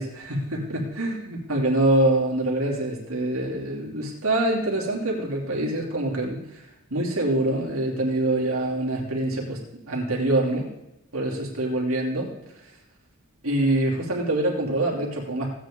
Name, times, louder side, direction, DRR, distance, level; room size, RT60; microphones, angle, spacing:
voice 1, 0.0-9.6 9.9-10.7 11.1-12.3 13.4-15.5, right 1 dB, 80° right, -2 dB, 3.0 m, -25 dB
16.5 x 9.3 x 3.8 m, 0.91 s
head